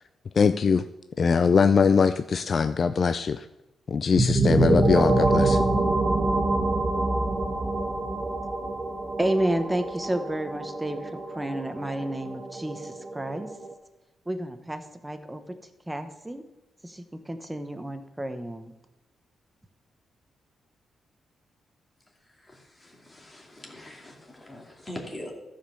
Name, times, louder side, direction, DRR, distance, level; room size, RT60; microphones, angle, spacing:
voice 1, 0.4-0.8 1.2-3.4 3.9-5.6, left 5 dB, 45° left, 11 dB, 0.4 m, -22 dB
sound 1, 4.2-13.7, right 2 dB, 30° right, 1.3 m, -26 dB
voice 2, 9.2-13.5 14.3-15.6 15.9-16.4 16.8-18.7, right 1 dB, 10° right, 8 dB, 1.1 m, -31 dB
voice 3, 22.5-25.3, left 1 dB, 20° left, 0 dB, 2.6 m, -42 dB
13.5 x 5.3 x 7.0 m, 0.97 s
cardioid pair, 125°, 0 cm